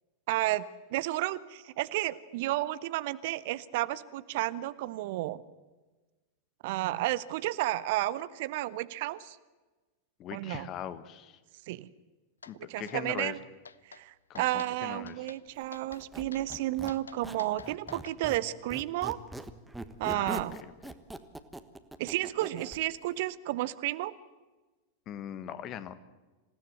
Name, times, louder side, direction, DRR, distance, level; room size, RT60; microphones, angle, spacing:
voice 1, 0.3-0.6 0.9-5.4 6.6-9.4 10.3-10.7 11.7-11.9 12.7-13.4 13.9-19.2 20.0-20.5 22.0-24.1, right 16 dB, 50° right, 16 dB, 0.8 m, -32 dB
voice 2, 10.2-11.4 12.5-13.4 14.3-15.3 20.1-20.4 25.1-25.9, left 10 dB, 35° left, 13 dB, 1.5 m, -40 dB
sound 1, 12.4-12.5 12.9-13.3 13.6-14.0 14.3-14.7 15.1-15.4 15.7-16.0 16.3-18.2, left 5 dB, 75° left, 0.6 m, -48 dB
Squeak, 15.9-18.4 18.7-22.8, right 1 dB, 5° right, 1.4 m, -42 dB
27.0 x 16.0 x 7.9 m, 1.2 s
figure-of-eight pair, 90°, 0 cm